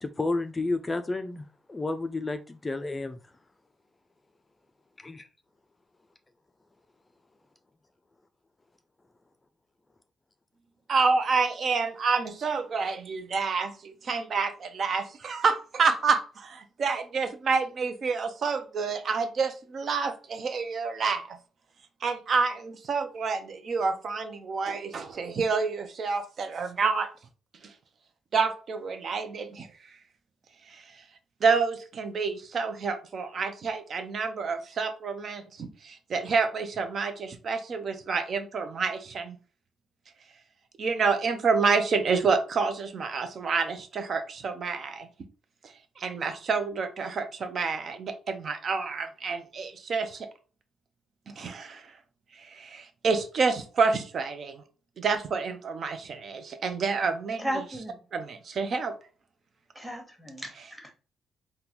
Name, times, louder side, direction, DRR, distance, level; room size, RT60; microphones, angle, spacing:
voice 1, 0.0-3.2 5.0-5.3, left 2 dB, 20° left, 0.3 m, -31 dB
voice 2, 10.9-21.4 22.0-27.1 27.6-27.7 28.3-29.7 30.7-30.8 31.4-39.4 40.8-45.1 46.0-50.3 51.3-51.9 52.4-54.6 55.0-57.5 58.1-58.9, right 5 dB, 50° right, 0.5 m, -28 dB
voice 3, 57.4-58.0 59.7-60.9, equal, 5° right, 1.1 m, -35 dB
3.7 x 2.2 x 2.9 m
cardioid pair, 90°, 0 cm